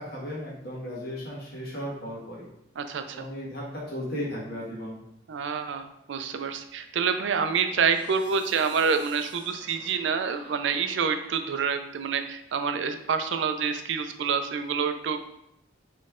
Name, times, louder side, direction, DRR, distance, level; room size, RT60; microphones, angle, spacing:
voice 1, 0.0-2.5 3.1-5.0, equal, 55° left, -5 dB, 1.5 m, -35 dB
voice 2, 2.8-3.3 5.3-15.2, right 6 dB, 75° right, 8 dB, 0.4 m, -27 dB
sound 1, 7.0-12.0, equal, 5° right, 1.1 m, -51 dB
4.2 x 3.1 x 3.6 m, 0.79 s
head